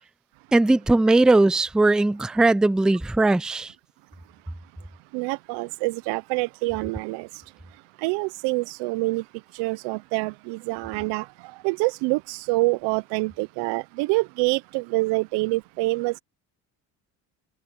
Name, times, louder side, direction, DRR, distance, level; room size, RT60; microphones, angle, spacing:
voice 1, 0.5-3.7, right 2 dB, ahead, 0.4 m, -19 dB
voice 2, 5.1-7.3 8.0-9.2 9.5-11.3 11.6-16.2, right 24 dB, 90° right, 0.6 m, -26 dB
supercardioid pair, 85°, 40 cm